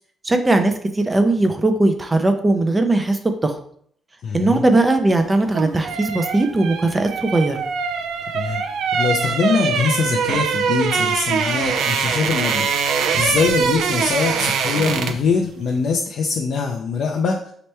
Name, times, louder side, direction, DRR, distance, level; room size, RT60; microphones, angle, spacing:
voice 1, 0.2-3.6 4.3-7.6, right 2 dB, 20° right, 6 dB, 0.5 m, -19 dB
voice 2, 4.2-4.6 8.3-8.6 8.9-12.7 13.2-17.5, left 5 dB, 65° left, 0 dB, 0.5 m, -22 dB
sound 1, 5.3-15.3 15.6-15.8, right 6 dB, 80° right, 0.4 m, -23 dB
4.3 x 2.9 x 3.3 m, 0.62 s
cardioid pair, 90°, 0 cm